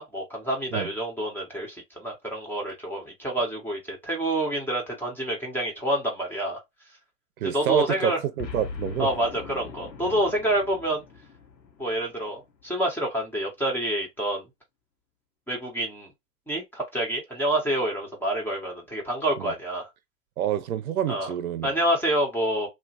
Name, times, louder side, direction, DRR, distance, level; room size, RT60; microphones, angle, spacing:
voice 1, 0.0-6.6 7.5-8.2 9.0-11.0 11.8-14.4 15.5-16.1 16.5-19.9 21.1-21.3 21.6-22.7, right 1 dB, 5° left, 0.7 m, -27 dB
voice 2, 7.4-9.1 10.1-10.2 19.4-19.5 20.4-21.7, right 10 dB, 60° right, 0.7 m, -28 dB
Boom, 8.4-12.8, left 5 dB, 85° left, 0.8 m, -41 dB
3.0 x 2.1 x 2.7 m
figure-of-eight pair, 100°, 50 cm